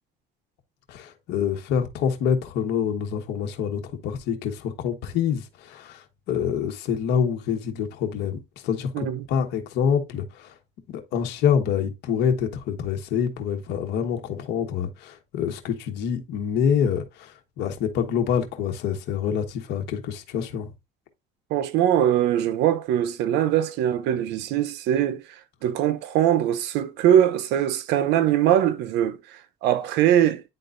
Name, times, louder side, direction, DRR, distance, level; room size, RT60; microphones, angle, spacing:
voice 1, 0.9-8.4 8.6-10.6 10.9-20.7, left 7 dB, 85° left, 1.3 m, -26 dB
voice 2, 8.9-9.2 21.5-30.4, right 11 dB, 90° right, 0.8 m, -22 dB
9.9 x 3.9 x 2.6 m
cardioid pair, 110°, 17 cm